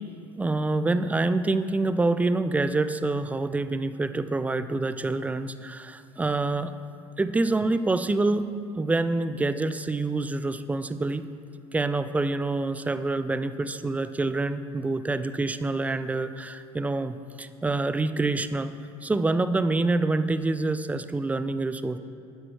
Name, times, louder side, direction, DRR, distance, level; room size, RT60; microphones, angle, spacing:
voice 1, 0.4-6.7 7.2-11.3 11.7-18.7 19.0-22.0, right 2 dB, 10° right, 13 dB, 0.4 m, -26 dB
12.0 x 10.0 x 3.1 m, 2.5 s
figure-of-eight pair, 65°, 16 cm